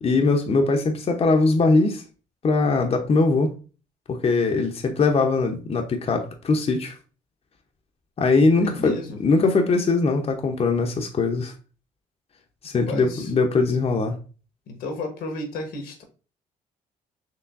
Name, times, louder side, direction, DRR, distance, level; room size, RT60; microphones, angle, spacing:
voice 1, 0.0-2.0 2.4-3.5 4.1-6.9 8.2-11.5 12.6-14.2, left 3 dB, 40° left, 0.7 m, -21 dB
voice 2, 8.6-9.2 12.9-13.3 14.7-16.0, left 2 dB, 75° left, 1.1 m, -33 dB
4.6 x 3.1 x 2.5 m
hypercardioid pair, 55°, 17 cm